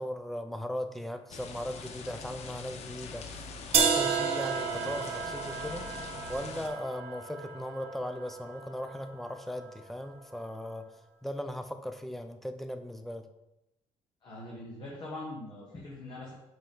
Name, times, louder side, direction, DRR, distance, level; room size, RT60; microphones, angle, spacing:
voice 1, 0.0-5.9 6.3-10.9 11.2-13.3, equal, ahead, 7 dB, 0.6 m, -38 dB
sound 1, 1.3-6.7, left 5 dB, 60° left, 0.9 m, -43 dB
sound 2, 3.7-9.7, right 6 dB, 50° right, 1.1 m, -32 dB
voice 2, 14.2-16.3, left 2 dB, 35° left, -5 dB, 1.7 m, -42 dB
5.8 x 5.0 x 5.7 m, 0.91 s
cardioid pair, 130°, 13 cm